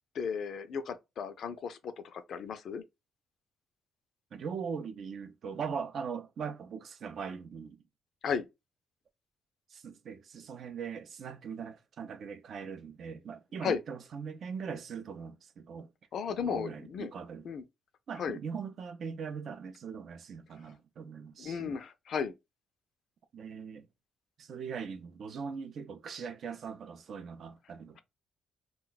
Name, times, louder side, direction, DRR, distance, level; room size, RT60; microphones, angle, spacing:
voice 1, 0.1-2.8 8.2-8.5 13.6-13.8 16.1-17.1 17.4-17.6 18.2-18.4 21.4-22.3, left 6 dB, 65° left, 0.4 m, -35 dB
voice 2, 4.3-7.8 9.7-15.9 16.5-17.5 18.1-21.8 23.3-23.9 24.4-28.0, right 6 dB, 60° right, 0.5 m, -40 dB
2.3 x 2.2 x 3.9 m
cardioid pair, 90°, 0 cm